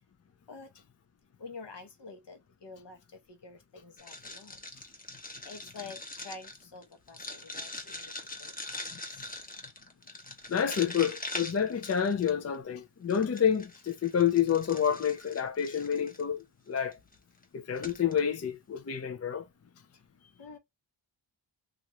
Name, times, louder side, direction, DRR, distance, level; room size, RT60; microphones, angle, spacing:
voice 1, 1.4-3.0 3.3-4.6 5.4-8.1 8.4-8.5 20.4-20.6, left 4 dB, 55° left, 0.9 m, -47 dB
sound 1, 4.0-12.5 13.1-16.2 16.9-17.1 17.4-17.5 17.8-18.2, left 2 dB, 15° left, 0.8 m, -42 dB
voice 2, 10.5-17.0 17.5-19.5, left 8 dB, 35° left, 0.4 m, -29 dB
2.9 x 2.4 x 2.8 m
wide cardioid pair, 80°, 50 cm